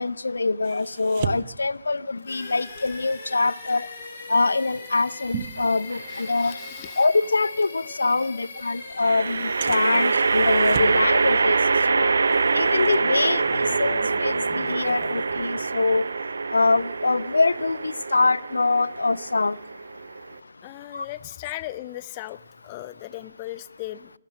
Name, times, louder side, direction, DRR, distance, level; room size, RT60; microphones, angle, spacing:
voice 1, 0.0-3.9 4.3-6.5 7.0-11.5 11.9-12.1 12.5-13.4 13.8-16.0 16.5-19.6 20.9-21.0, left 3 dB, 70° left, 0.7 m, -24 dB
sound 1, 0.6-6.4 6.8-7.0 7.6-7.7 8.6-8.7 9.6-11.1 11.4-11.9 12.2-14.4 14.8-15.0, right 9 dB, 40° right, 1.2 m, -38 dB
sound 2, 2.3-16.0, left 2 dB, 50° left, 7.9 m, -41 dB
sound 3, 5.9-6.5 9.0-20.4, right 4 dB, 65° right, 1.0 m, -24 dB
voice 2, 6.1-7.1 20.6-24.1, left 16 dB, 30° left, 0.8 m, -37 dB
20.0 x 18.5 x 7.6 m
figure-of-eight pair, 135°, 0 cm